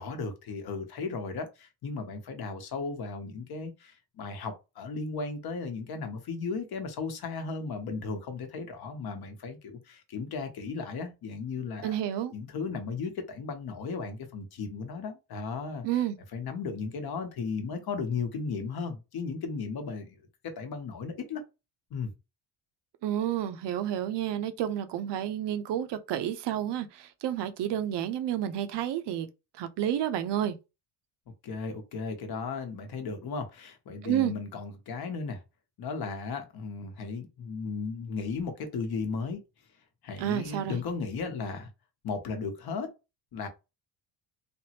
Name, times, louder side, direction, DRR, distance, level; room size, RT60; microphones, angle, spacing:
voice 1, 0.0-12.0 12.3-15.8 16.3-20.2 20.4-21.4 21.9-22.1 31.4-35.4 35.8-39.4 40.0-41.7 42.0-42.9 43.3-43.5, left 4 dB, 55° left, 0.9 m, -35 dB
voice 2, 11.8-12.3 15.8-16.2 23.0-29.3 29.5-30.6 34.0-34.3 40.2-40.8, right 11 dB, 65° right, 0.6 m, -30 dB
3.4 x 2.0 x 2.9 m
cardioid pair, 95°, 45 cm